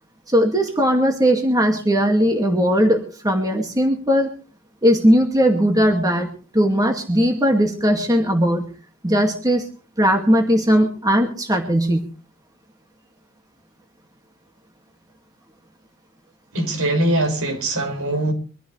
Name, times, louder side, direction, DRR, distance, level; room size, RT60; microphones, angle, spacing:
voice 1, 0.3-4.3 4.8-6.3 6.5-8.7 9.0-9.7 10.0-12.0, equal, 15° right, 2.2 m, -18 dB
voice 2, 16.5-18.3, right 1 dB, 70° right, 6.1 m, -22 dB
24.0 x 15.0 x 3.3 m
head